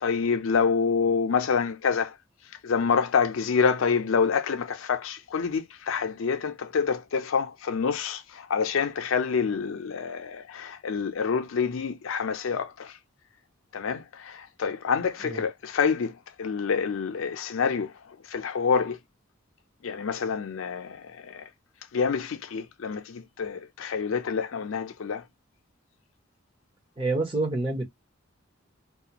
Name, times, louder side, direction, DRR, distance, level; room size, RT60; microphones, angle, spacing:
voice 1, 0.0-2.2 2.6-13.0 13.7-17.9 18.3-19.0 19.8-21.5 21.9-25.2, left 5 dB, 75° left, 0.5 m, -27 dB
voice 2, 27.0-27.8, right 2 dB, 25° right, 0.9 m, -27 dB
2.4 x 2.3 x 2.8 m
head